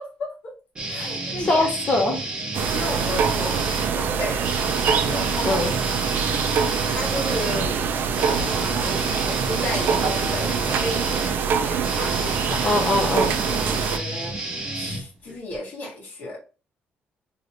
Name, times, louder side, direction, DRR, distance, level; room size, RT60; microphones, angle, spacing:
voice 1, 0.2-0.5 0.9-1.7 2.7-4.7 5.1-5.6 6.8-7.9 8.2-12.8 13.5-14.3 14.7-16.4, left 1 dB, 55° left, 1.6 m, -33 dB
sound 1, 0.8-3.9 4.4-15.6, right 2 dB, 25° right, 0.8 m, -31 dB
voice 2, 1.4-2.2 5.4-5.7 12.6-13.4, left 2 dB, 30° left, 0.8 m, -22 dB
sound 2, 2.5-14.0, right 6 dB, 55° right, 0.4 m, -24 dB
3.1 x 2.8 x 2.8 m
cardioid pair, 155°, 4 cm